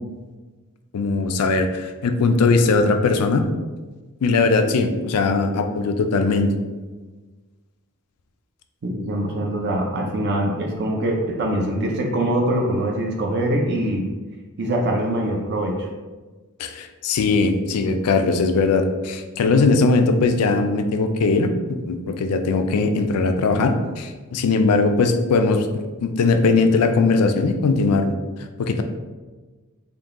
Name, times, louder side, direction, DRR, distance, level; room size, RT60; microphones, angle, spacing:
voice 1, 0.9-3.5 4.2-6.5 16.6-28.1 28.6-28.8, left 3 dB, 90° left, 7 dB, 0.4 m, -20 dB
voice 2, 8.8-14.0 14.6-15.9, right 1 dB, 50° right, 0 dB, 0.5 m, -23 dB
3.7 x 2.3 x 3.6 m, 1.3 s
head